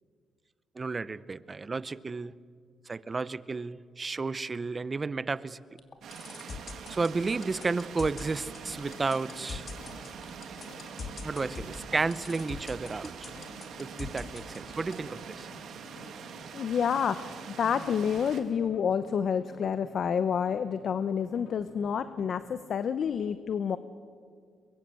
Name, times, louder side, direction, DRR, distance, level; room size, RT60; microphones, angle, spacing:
voice 1, 0.8-2.3 2.9-5.6 6.9-9.7 11.2-13.3 13.8-15.5, right 4 dB, 30° right, 17 dB, 0.7 m, -32 dB
sound 1, 5.8-14.9, left 4 dB, 40° left, 2.5 m, -41 dB
sound 2, 6.0-18.4, right 6 dB, 70° right, 2.5 m, -44 dB
sound 3, 8.7-22.4, left 4 dB, 75° left, 2.9 m, -54 dB
voice 2, 16.5-23.8, left 7 dB, 60° left, 12 dB, 0.8 m, -29 dB
23.5 x 22.0 x 7.7 m, 2.1 s
cardioid pair, 90°, 0 cm